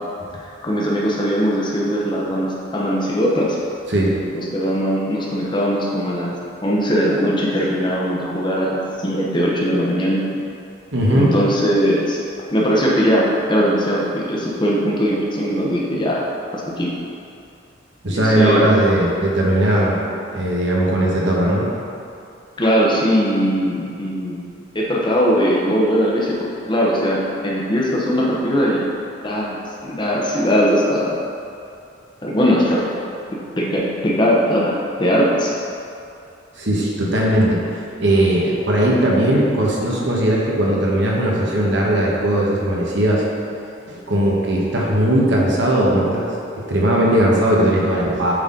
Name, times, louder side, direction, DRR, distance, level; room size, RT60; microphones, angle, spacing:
voice 1, 0.6-3.6 4.3-6.3 6.6-10.4 11.1-12.2 12.5-16.2 16.6-16.9 18.1-18.7 22.6-24.4 24.7-28.8 29.2-31.1 32.2-32.8 33.6-35.5, equal, 25° left, -4 dB, 0.8 m, -20 dB
voice 2, 10.9-11.3 18.0-21.7 36.6-37.6 38.0-43.2 43.9-46.3 46.6-48.3, right 1 dB, 65° right, -4 dB, 1.2 m, -18 dB
8.1 x 4.0 x 3.8 m, 2.6 s
head